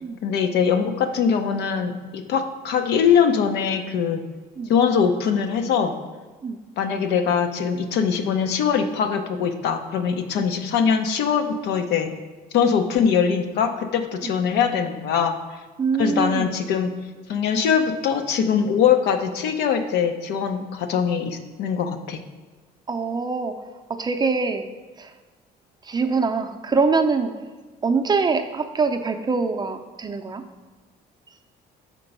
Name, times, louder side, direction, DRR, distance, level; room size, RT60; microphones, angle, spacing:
voice 1, 0.2-4.2 4.7-5.9 6.8-12.1 12.5-15.4 16.0-16.9 17.3-22.2, left 7 dB, 80° left, 7 dB, 0.7 m, -22 dB
voice 2, 15.8-16.5 22.9-23.5 23.9-24.6 25.0-25.1 25.8-27.3 27.8-30.4, right 4 dB, 25° right, 6 dB, 0.5 m, -24 dB
5.8 x 4.5 x 5.4 m, 1.3 s
cardioid pair, 110°, 17 cm